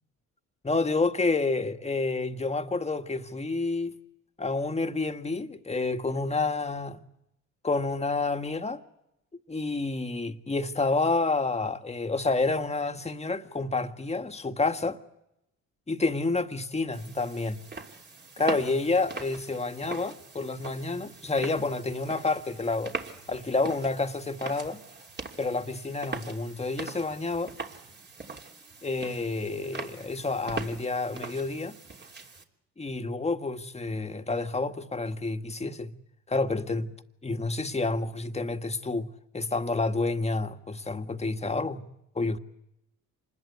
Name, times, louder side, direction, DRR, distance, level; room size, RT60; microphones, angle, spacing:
voice 1, 0.6-3.9 4.4-7.0 7.6-8.8 9.5-15.0 15.9-17.6 18.4-22.9 23.3-24.8 25.4-27.5 28.8-31.7 32.8-35.9 36.3-36.9 37.2-39.1 39.3-41.8 42.1-42.4, left 3 dB, 20° left, 1.8 m, -29 dB
sound 1, 16.9-32.4, right 4 dB, 35° right, 3.2 m, -41 dB
26.5 x 20.5 x 8.2 m
supercardioid pair, 80°, 32 cm